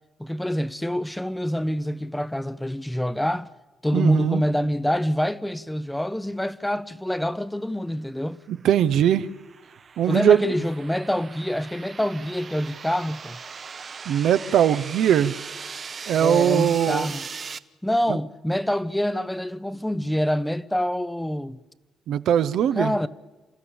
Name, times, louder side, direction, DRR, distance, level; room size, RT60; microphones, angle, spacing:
voice 1, 0.2-3.5 3.8-8.4 10.1-13.4 16.1-17.3 17.8-21.6 22.8-23.1, equal, 5° left, 0.7 m, -26 dB
voice 2, 3.9-4.4 8.5-9.3 10.0-10.5 14.1-15.3 16.1-17.1 22.1-22.9, right 10 dB, 75° right, 0.7 m, -20 dB
sound 1, 8.6-17.6, right 5 dB, 45° right, 0.7 m, -39 dB
28.5 x 13.0 x 8.8 m
cardioid pair, 90°, 0 cm